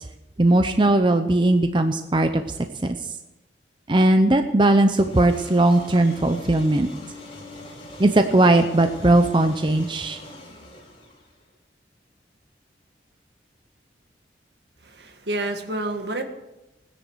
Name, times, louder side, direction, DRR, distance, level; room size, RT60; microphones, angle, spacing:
voice 1, 0.4-2.4 2.8-3.0 3.9-6.9 8.0-10.2, right 2 dB, 25° right, 7 dB, 0.6 m, -18 dB
sound 1, 5.0-11.5, left 1 dB, 30° left, 4.3 m, -42 dB
voice 2, 14.8-16.2, right 2 dB, 70° right, 6 dB, 1.7 m, -29 dB
16.5 x 10.5 x 6.3 m, 0.94 s
head